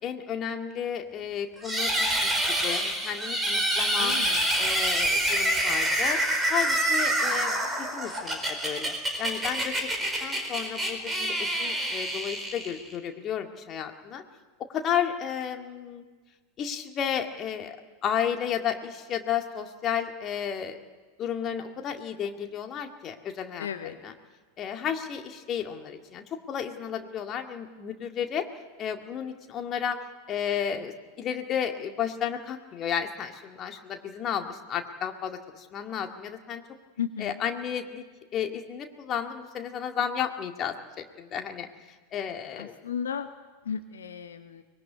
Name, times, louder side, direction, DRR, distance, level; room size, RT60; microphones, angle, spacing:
voice 1, 0.0-4.2 4.6-6.2 6.5-9.7 10.2-14.2 14.7-16.0 16.6-17.8 18.0-20.8 21.2-24.1 24.6-28.5 28.8-30.0 30.3-36.6 37.2-38.0 38.3-41.7 42.1-42.7, left 8 dB, 30° left, 5 dB, 2.0 m, -32 dB
sound 1, 1.6-13.0, right 1 dB, 10° right, 4.5 m, -27 dB
voice 2, 4.0-4.4 23.6-24.0 37.0-37.3 42.6-43.3 43.7-44.6, left 8 dB, 65° left, 9 dB, 1.0 m, -34 dB
23.5 x 21.0 x 9.5 m, 1.4 s
figure-of-eight pair, 90°, 0 cm